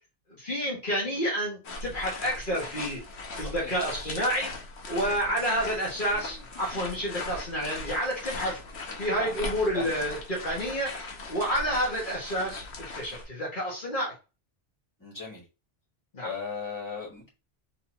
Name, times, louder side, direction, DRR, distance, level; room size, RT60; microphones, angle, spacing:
voice 1, 0.4-3.0 3.4-4.5 4.9-8.6 9.0-10.9 11.3-14.1 16.1-16.3, equal, 50° left, -5 dB, 1.8 m, -29 dB
sound 1, 1.6-13.3, left 2 dB, 85° left, 1.4 m, -39 dB
voice 2, 3.4-3.7 5.1-5.3 8.9-9.9 15.0-15.4 16.2-17.3, left 5 dB, 15° left, -6 dB, 2.6 m, -38 dB
4.2 x 4.0 x 2.9 m, 0.29 s
omnidirectional pair, 1.1 m